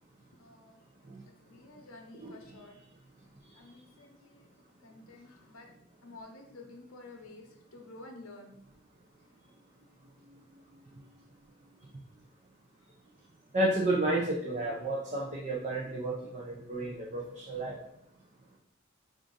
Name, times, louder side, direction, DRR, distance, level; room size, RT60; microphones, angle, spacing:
voice 1, 0.4-0.8 1.4-2.8 3.5-4.5 4.8-5.7 6.0-8.5, left 2 dB, 80° left, 2 dB, 0.7 m, -51 dB
voice 2, 13.5-17.8, right 1 dB, 35° right, -3 dB, 0.5 m, -31 dB
4.7 x 2.5 x 3.8 m, 0.76 s
head